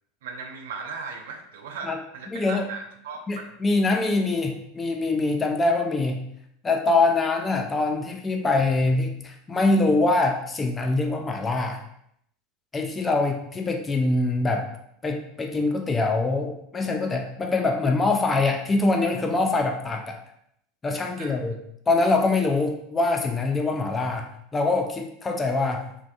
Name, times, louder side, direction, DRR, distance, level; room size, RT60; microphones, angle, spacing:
voice 1, 0.2-3.6 21.1-21.5, right 4 dB, 70° right, 4 dB, 0.3 m, -37 dB
voice 2, 2.3-2.7 3.3-6.2 6.6-11.8 12.7-14.7 15.0-20.2 20.8-21.6 21.9-24.3 24.5-25.8, left 3 dB, 20° left, 3 dB, 0.4 m, -24 dB
2.4 x 2.2 x 2.5 m, 0.73 s
figure-of-eight pair, 80°, 0 cm